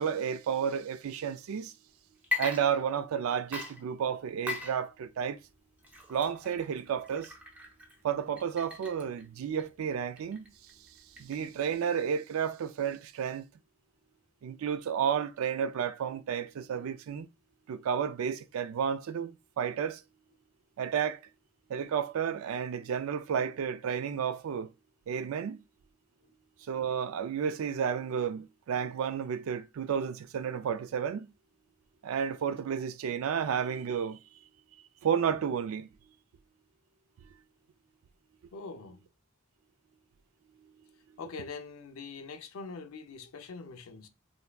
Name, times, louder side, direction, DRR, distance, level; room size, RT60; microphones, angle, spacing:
voice 1, 0.0-1.7 2.4-5.4 6.1-7.3 8.0-10.5 11.2-13.5 14.4-17.3 17.7-20.0 20.8-21.2 21.7-24.7 25.1-25.6 26.7-31.3 32.0-34.2 35.0-35.9, right 7 dB, 80° right, 0.3 m, -32 dB
Water / Liquid, 2.2-3.2 3.5-11.7, left 4 dB, 5° right, 0.5 m, -40 dB
voice 2, 38.5-39.0 41.2-44.1, left 4 dB, 90° left, 0.5 m, -43 dB
3.3 x 2.6 x 2.2 m
head